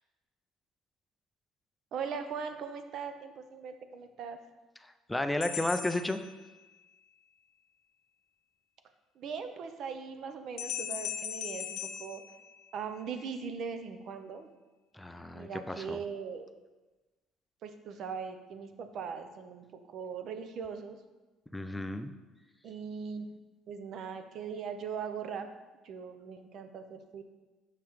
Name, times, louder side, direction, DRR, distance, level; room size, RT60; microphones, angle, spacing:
voice 1, 1.9-4.4 9.2-12.2 12.7-14.5 15.3-16.5 17.6-21.0 22.6-23.4 23.7-25.5 25.8-27.2, right 6 dB, 50° right, 8 dB, 0.6 m, -40 dB
voice 2, 4.8-6.2 14.9-16.0 21.5-22.1, left 1 dB, 5° left, 8 dB, 0.3 m, -33 dB
sound 1, 5.4-6.9 10.6-13.1, left 9 dB, 70° left, 0.5 m, -39 dB
6.8 x 5.7 x 3.1 m, 1.2 s
cardioid pair, 145°, 0 cm